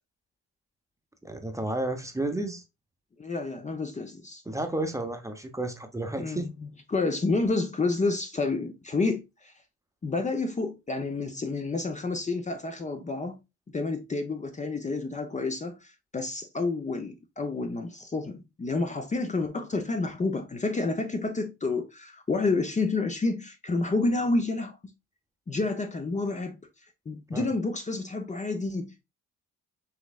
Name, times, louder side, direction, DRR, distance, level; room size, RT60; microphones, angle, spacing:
voice 1, 1.2-2.6 4.5-6.5 27.3-27.5, right 2 dB, 10° right, 0.8 m, -32 dB
voice 2, 3.2-4.4 6.2-9.5 10.0-13.4 13.7-24.8 25.5-26.6 27.1-29.0, left 3 dB, 25° left, 0.7 m, -29 dB
5.7 x 3.0 x 2.3 m
cardioid pair, 90°, 30 cm